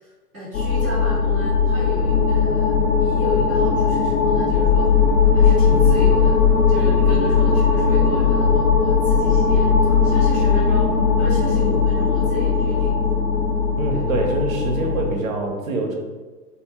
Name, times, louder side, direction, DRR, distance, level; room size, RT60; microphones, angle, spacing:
voice 1, 0.0-2.7 3.0-4.9 5.3-6.3 6.7-9.7 10.0-10.9 11.2-13.0 13.9-14.0, equal, ahead, -21 dB, 0.4 m, -33 dB
sound 1, 0.5-15.1, left 5 dB, 65° left, 0.6 m, -18 dB
voice 2, 13.8-16.0, right 2 dB, 55° right, 2 dB, 0.6 m, -24 dB
2.5 x 2.2 x 3.3 m, 1.3 s
figure-of-eight pair, 115°, 49 cm